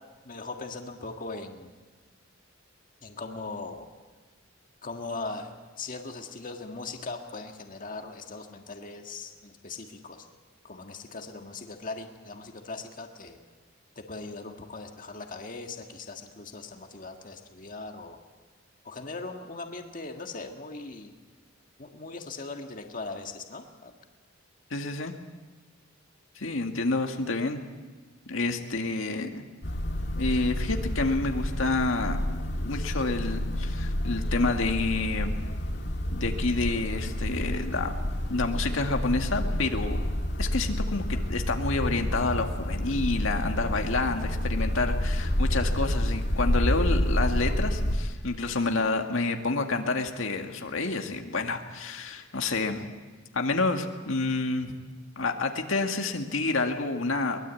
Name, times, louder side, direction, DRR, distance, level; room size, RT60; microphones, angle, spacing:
voice 1, 0.2-1.7 3.0-3.9 4.8-10.3 10.6-13.4 13.9-18.2 18.8-21.2 21.8-23.9, left 3 dB, 45° left, 4 dB, 1.7 m, -39 dB
voice 2, 24.7-25.1 26.4-27.6 28.3-29.4 30.1-32.2 32.6-35.3 36.1-38.0 38.3-40.0 40.4-52.9 53.3-54.7 55.2-57.4, left 3 dB, 80° left, 4 dB, 1.9 m, -29 dB
sound 1, 29.6-48.0, left 1 dB, 60° left, 2.0 m, -29 dB
22.5 x 21.0 x 8.3 m, 1.3 s
head